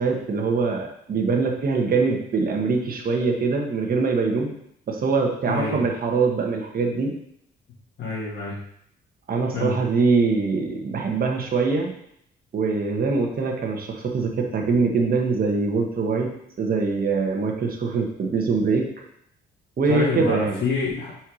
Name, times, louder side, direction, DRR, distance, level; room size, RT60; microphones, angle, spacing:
voice 1, 0.0-4.5 4.9-7.1 9.3-11.9 12.5-16.3 16.6-18.9 19.8-20.6, right 4 dB, 50° right, 1 dB, 1.2 m, -23 dB
voice 2, 5.4-5.8 8.0-8.6 9.5-9.8 19.9-21.1, left 4 dB, 60° left, -6 dB, 1.7 m, -27 dB
4.5 x 4.5 x 4.9 m, 0.71 s
cardioid pair, 90°, 20 cm